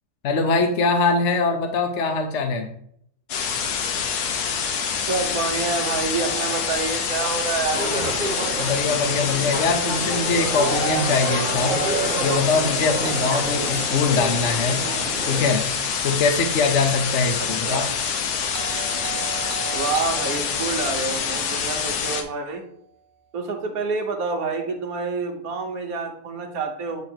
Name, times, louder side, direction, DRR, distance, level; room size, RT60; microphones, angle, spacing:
voice 1, 0.2-2.7 8.6-11.8 12.2-14.8 15.2-15.6 16.0-17.9, left 4 dB, 55° left, 4 dB, 0.9 m, -22 dB
sound 1, 3.3-22.2, left 6 dB, 75° left, 1.3 m, -26 dB
voice 2, 5.0-8.1 17.4-17.9 19.7-22.7 23.3-27.0, right 4 dB, 65° right, 4 dB, 1.4 m, -28 dB
Doorbell, 6.2-10.2 13.0-17.3 18.5-22.9, right 6 dB, 90° right, 1.2 m, -41 dB
sound 2, 7.7-15.5, right 2 dB, 40° right, 0.8 m, -29 dB
8.3 x 3.0 x 4.4 m, 0.69 s
omnidirectional pair, 1.7 m